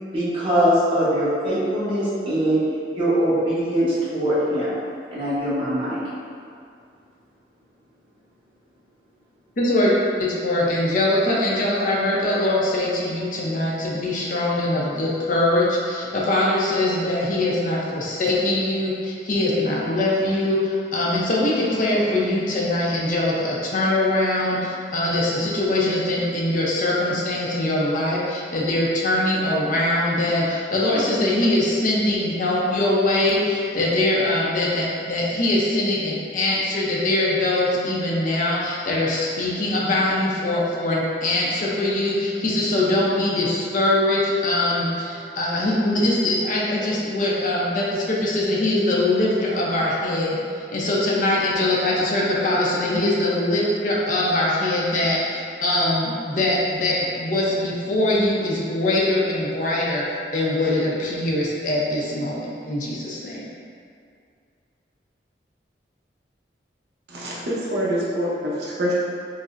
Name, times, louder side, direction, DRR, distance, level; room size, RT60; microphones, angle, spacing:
voice 1, 0.1-2.6 2.9-4.7 5.1-6.0, equal, 30° right, -11 dB, 1.0 m, -22 dB
voice 2, 9.6-60.0 60.3-63.5, left 1 dB, 45° left, -4 dB, 0.5 m, -22 dB
voice 3, 67.1-68.9, equal, 65° right, -6 dB, 0.6 m, -25 dB
4.8 x 2.0 x 2.4 m, 2.3 s
head